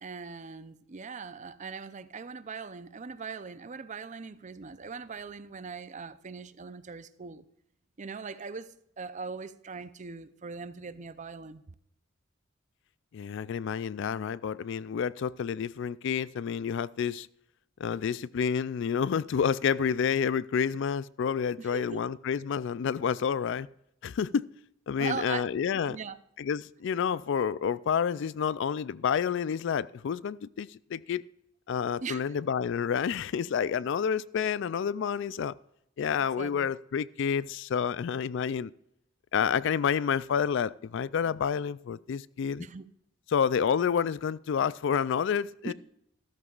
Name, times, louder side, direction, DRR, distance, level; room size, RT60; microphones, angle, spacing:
voice 1, 0.0-7.4 8.0-11.6 21.6-22.1 25.0-25.5 25.9-26.2 32.0-32.2 36.2-36.7 42.6-42.9 45.6-45.7, right 5 dB, 40° right, 0.6 m, -40 dB
voice 2, 13.1-17.3 17.8-23.7 24.0-24.5 24.9-26.0 26.4-31.3 31.7-35.5 36.0-38.7 39.3-42.7 43.3-45.7, left 7 dB, 65° left, 0.3 m, -29 dB
14.0 x 13.0 x 2.4 m
head